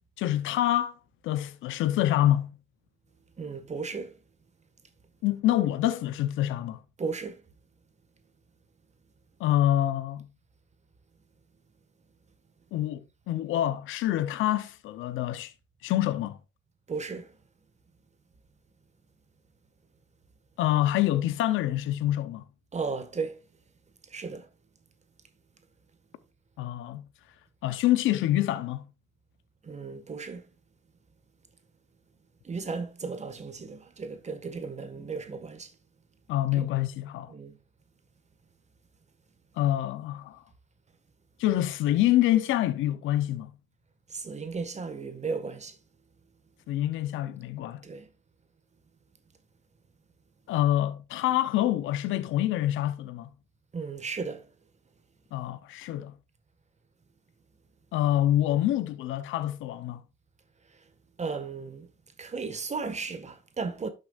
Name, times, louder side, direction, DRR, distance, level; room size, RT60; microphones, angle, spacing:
voice 1, 0.2-1.0 1.2-2.5 5.2-6.8 9.4-10.3 12.7-15.5 15.8-16.4 20.6-22.4 26.6-27.1 27.6-28.9 36.3-37.3 39.6-40.4 41.4-43.5 46.7-47.8 50.5-53.3 55.3-56.1 57.9-60.0, left 13 dB, 90° left, 0.7 m, -26 dB
voice 2, 3.4-4.1 7.0-7.4 16.9-17.3 22.7-23.4 24.1-24.5 29.6-30.4 32.4-35.7 36.5-36.6 37.3-37.6 44.1-45.8 47.8-48.1 53.7-54.5 61.2-61.9 62.2-63.9, right 4 dB, 35° right, 1.5 m, -35 dB
12.0 x 6.8 x 2.4 m
cardioid pair, 90°, 20 cm